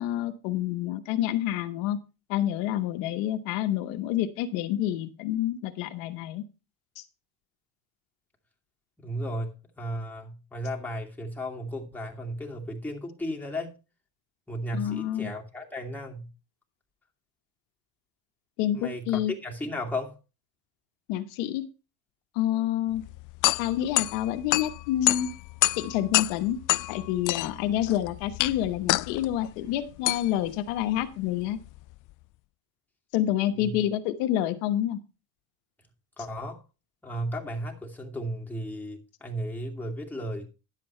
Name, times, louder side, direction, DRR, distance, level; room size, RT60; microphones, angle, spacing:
voice 1, 0.0-2.0 2.3-6.4 7.0-7.1 14.7-15.3 18.6-19.3 21.1-21.7 22.3-23.0 23.6-25.3 25.8-26.6 26.9-31.6 33.1-35.0, left 12 dB, 90° left, 1.1 m, -28 dB
voice 2, 9.0-13.7 14.5-16.3 18.7-20.2 33.5-33.8 36.2-36.6 37.0-40.5, equal, 5° left, 2.5 m, -34 dB
sound 1, 22.9-32.1, left 20 dB, 55° left, 0.4 m, -29 dB
11.0 x 7.7 x 4.4 m
cardioid pair, 105°, 37 cm